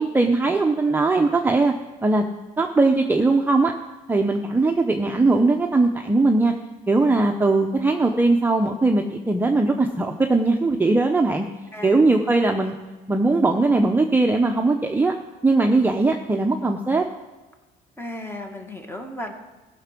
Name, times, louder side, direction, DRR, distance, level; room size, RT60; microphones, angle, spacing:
voice 1, 0.0-1.7 2.0-2.2 2.6-3.7 4.1-6.5 6.9-11.5 11.8-12.7 13.1-15.1 15.4-17.1, right 3 dB, 10° right, 3 dB, 0.7 m, -20 dB
voice 2, 18.0-19.3, left 1 dB, 15° left, 4 dB, 1.7 m, -34 dB
15.0 x 6.0 x 5.9 m, 1.2 s
cardioid pair, 110°, 17 cm